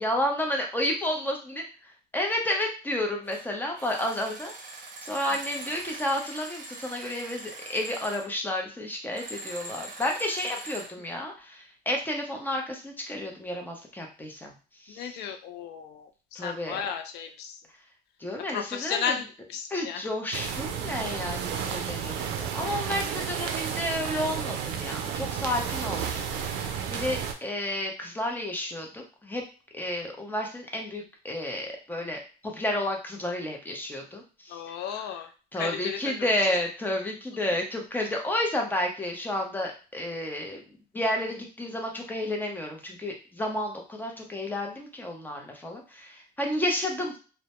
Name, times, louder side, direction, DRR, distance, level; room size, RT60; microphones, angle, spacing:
voice 1, 0.0-4.5 5.0-14.5 14.8-15.1 16.3-16.8 18.2-19.1 19.7-29.4 29.7-34.6 35.5-47.2, left 1 dB, 10° left, 1 dB, 0.6 m, -31 dB
sound 1, 3.2-3.5 3.7-8.3 9.1-10.9, right 2 dB, 50° right, 0.7 m, -42 dB
voice 2, 14.9-17.6 18.5-20.0 34.5-36.5, left 7 dB, 80° left, 7 dB, 0.4 m, -34 dB
sound 2, 20.3-27.3, right 7 dB, 90° right, 0.4 m, -32 dB
2.1 x 2.1 x 2.9 m, 0.36 s
cardioid pair, 110°, 17 cm